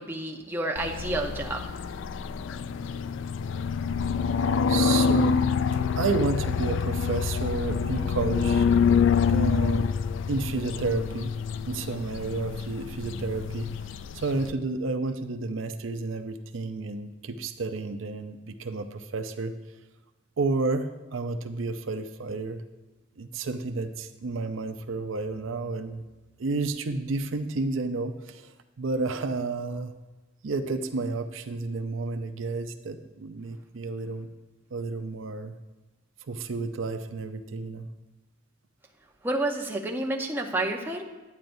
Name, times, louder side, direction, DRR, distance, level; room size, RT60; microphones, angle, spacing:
voice 1, 0.0-1.6 39.2-41.0, right 1 dB, 10° right, 0 dB, 0.7 m, -29 dB
sound 1, 0.8-14.5, left 6 dB, 70° left, 0.3 m, -26 dB
voice 2, 4.7-5.4 5.7-8.7 9.3-9.9 10.3-11.3 11.6-13.7 14.1-19.5 20.4-22.6 23.2-26.0 26.4-29.9 30.4-34.3 34.7-35.6 36.3-37.9, right 3 dB, 80° right, 8 dB, 0.5 m, -31 dB
10.5 x 8.8 x 2.6 m, 1.2 s
head